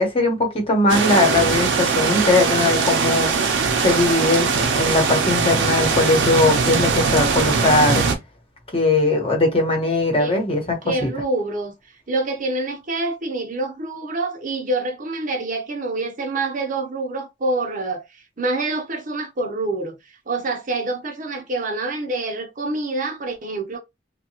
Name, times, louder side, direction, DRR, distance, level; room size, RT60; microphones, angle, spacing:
voice 1, 0.0-3.3 3.8-8.0 8.7-11.1, left 2 dB, 30° left, 1.0 m, -20 dB
sound 1, 0.9-8.2, right 5 dB, 85° right, 0.7 m, -20 dB
voice 2, 10.8-11.7 12.1-18.0 18.4-20.0 20.3-23.8, right 2 dB, 45° right, 0.7 m, -26 dB
2.8 x 2.3 x 2.9 m
head